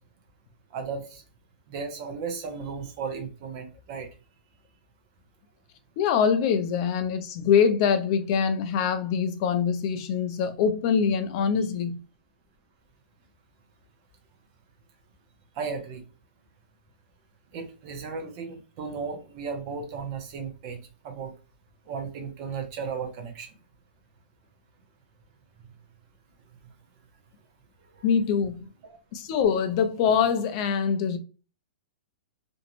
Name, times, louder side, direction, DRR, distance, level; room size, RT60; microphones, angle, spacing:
voice 1, 0.7-1.2 1.7-4.1 15.6-16.0 17.5-20.8 21.0-21.3 21.9-23.5 28.0-28.1 28.9-29.0, right 5 dB, 25° right, 0.5 m, -35 dB
voice 2, 6.0-12.0 28.0-28.7 29.1-31.2, left 7 dB, 25° left, 0.3 m, -24 dB
2.5 x 2.0 x 2.9 m
hypercardioid pair, 175°, 6 cm